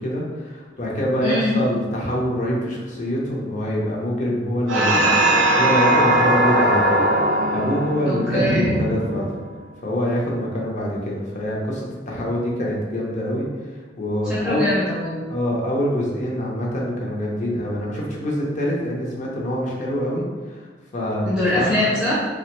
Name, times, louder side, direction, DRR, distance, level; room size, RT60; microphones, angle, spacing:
voice 1, 0.0-7.1 7.5-9.3 9.8-13.5 14.0-14.6 15.3-20.7 20.9-21.3 21.5-21.7, equal, 40° left, -3 dB, 0.6 m, -25 dB
voice 2, 1.2-1.6 8.1-8.7 14.2-15.3 21.3-22.1, left 1 dB, 5° right, -9 dB, 0.5 m, -23 dB
sound 1, 4.7-9.5, right 1 dB, 75° right, 0.5 m, -19 dB
2.9 x 2.1 x 2.9 m, 1.4 s
head